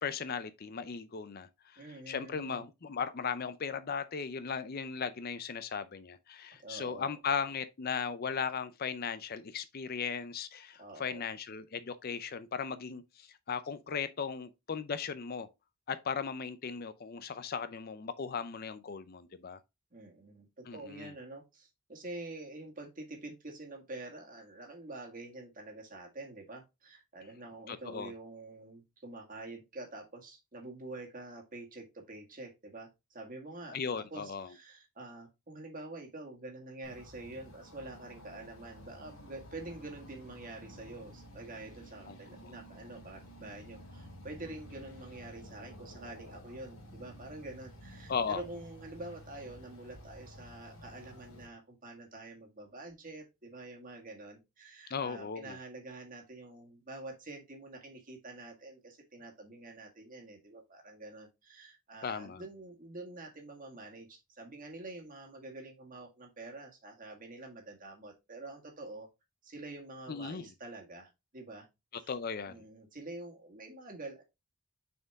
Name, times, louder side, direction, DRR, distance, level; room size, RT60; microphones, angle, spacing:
voice 1, 0.0-15.5 15.9-19.6 20.7-21.1 27.7-28.1 33.7-34.5 42.1-42.2 42.4-42.5 48.1-48.4 54.9-55.6 62.0-62.4 70.1-70.5 72.1-72.5, left 6 dB, 45° left, 0.5 m, -37 dB
voice 2, 1.8-2.6 6.6-7.2 10.8-11.3 19.9-69.1 69.4-71.7 72.0-72.1 72.5-74.2, right 2 dB, 35° right, 1.8 m, -47 dB
sound 1, 36.8-51.5, equal, 65° left, 2.5 m, -52 dB
6.5 x 4.5 x 3.4 m
head